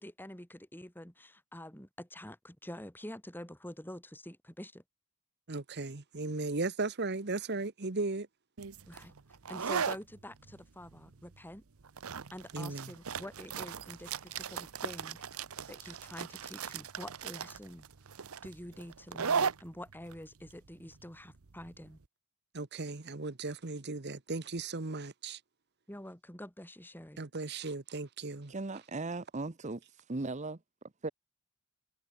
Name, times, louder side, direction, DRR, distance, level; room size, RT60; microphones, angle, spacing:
voice 1, 0.0-4.8 8.9-9.1 9.5-11.6 12.3-15.2 15.7-17.8 18.4-22.0 25.9-27.2, left 1 dB, 10° left, 2.9 m, -47 dB
voice 2, 5.5-8.3 12.5-12.9 22.5-25.4 27.2-28.5, right 3 dB, 50° right, 1.2 m, -36 dB
sound 1, 8.6-22.0, right 6 dB, 80° right, 0.9 m, -38 dB
voice 3, 28.5-29.8 30.1-30.6 31.0-31.1, right 3 dB, 35° right, 0.8 m, -37 dB
head